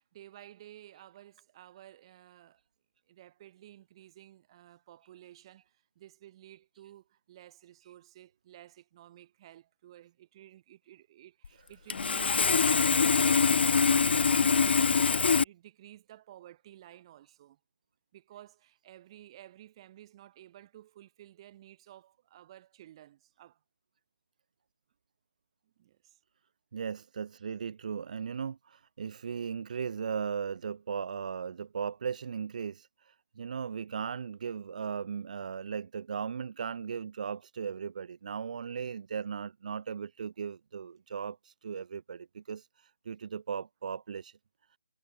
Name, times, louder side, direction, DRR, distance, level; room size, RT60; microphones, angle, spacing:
voice 1, 0.0-2.6 3.1-17.6 18.1-23.6 25.6-26.2, right 13 dB, 25° right, 5.4 m, -54 dB
Sawing, 11.4-11.5 11.9-15.4, left 5 dB, 60° left, 0.4 m, -24 dB
voice 2, 26.7-44.4, right 6 dB, 40° right, 0.4 m, -37 dB
figure-of-eight pair, 160°, 6 cm